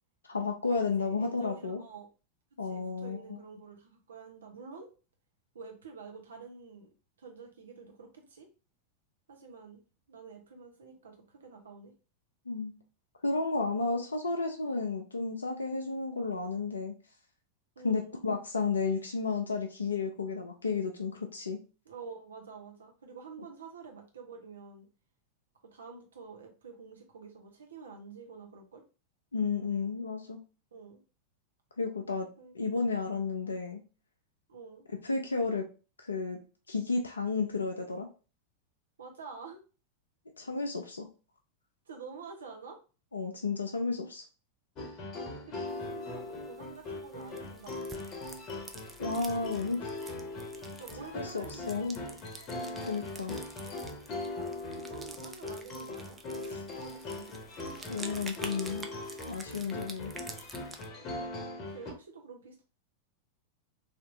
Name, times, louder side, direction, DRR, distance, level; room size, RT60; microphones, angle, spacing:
voice 1, 0.3-1.8 2.6-3.4 12.5-12.7 13.2-16.9 17.8-21.6 29.3-30.4 31.8-32.3 32.5-33.8 35.0-35.7 36.0-36.4 36.7-38.1 40.4-41.1 43.1-44.2 49.0-49.9 51.1-52.0 52.9-53.4 57.9-58.9 59.3-60.1, left 4 dB, 75° left, 3 dB, 0.5 m, -32 dB
voice 2, 0.9-2.1 2.6-4.9 5.5-6.9 7.2-8.5 9.3-9.8 10.1-11.9 17.8-18.2 21.8-24.9 25.7-28.8 30.7-31.0 32.4-32.5 34.5-34.9 39.0-39.6 41.9-42.8 45.1-48.1 50.6-52.2 53.3-53.5 54.2-57.3 61.0-62.6, right 5 dB, 70° right, 2 dB, 0.9 m, -48 dB
sound 1, 44.8-61.9, left 2 dB, 35° left, 0.9 m, -40 dB
sound 2, 45.7-60.9, right 3 dB, 10° right, 0.4 m, -49 dB
3.3 x 2.8 x 2.6 m, 0.33 s
figure-of-eight pair, 90°, 0 cm